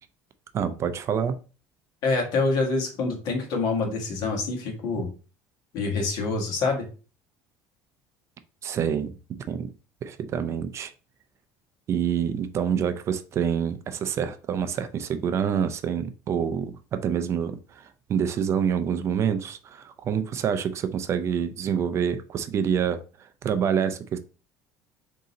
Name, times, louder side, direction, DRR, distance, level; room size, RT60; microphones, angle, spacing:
voice 1, 0.5-1.4 8.6-9.2 9.5-9.7 10.0-10.9 11.9-24.2, right 8 dB, 40° right, 0.4 m, -27 dB
voice 2, 2.0-5.1 5.7-6.9, left 3 dB, 60° left, 1.4 m, -26 dB
3.7 x 2.7 x 4.1 m
cardioid pair, 135°, 7 cm